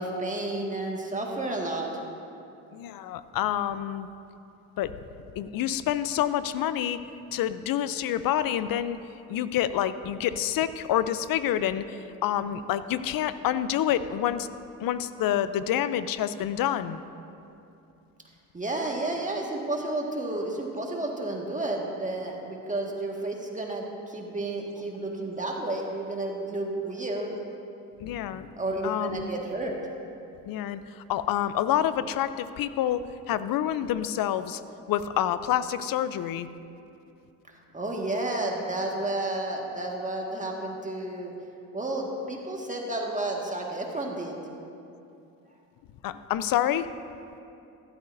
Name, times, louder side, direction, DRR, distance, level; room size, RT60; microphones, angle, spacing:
voice 1, 0.0-1.9 18.5-27.3 28.6-29.7 37.7-41.3 41.7-44.4, right 2 dB, 20° right, 0 dB, 1.7 m, -31 dB
voice 2, 2.7-4.1 4.8-5.0 5.4-7.0 7.3-9.0 9.3-14.5 14.8-17.0 28.0-28.5 28.8-29.3 30.4-34.6 34.9-36.5 46.0-46.9, left 11 dB, 55° left, 14 dB, 0.6 m, -28 dB
14.5 x 12.5 x 2.6 m, 2.7 s
supercardioid pair, 70°, 40 cm